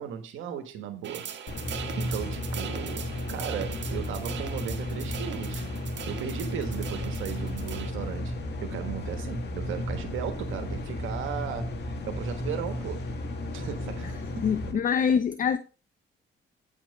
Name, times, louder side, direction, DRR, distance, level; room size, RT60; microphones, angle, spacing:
voice 1, 0.0-1.4 2.0-5.7 6.1-13.1 13.5-14.4 15.0-15.1, right 8 dB, 85° right, 1.4 m, -36 dB
sound 1, 1.0-7.9, right 9 dB, 65° right, 1.6 m, -40 dB
sound 2, 1.5-14.7, left 1 dB, 60° left, 2.4 m, -34 dB
voice 2, 14.4-15.6, left 7 dB, 40° left, 0.7 m, -24 dB
9.4 x 5.9 x 5.3 m
cardioid pair, 90°, 20 cm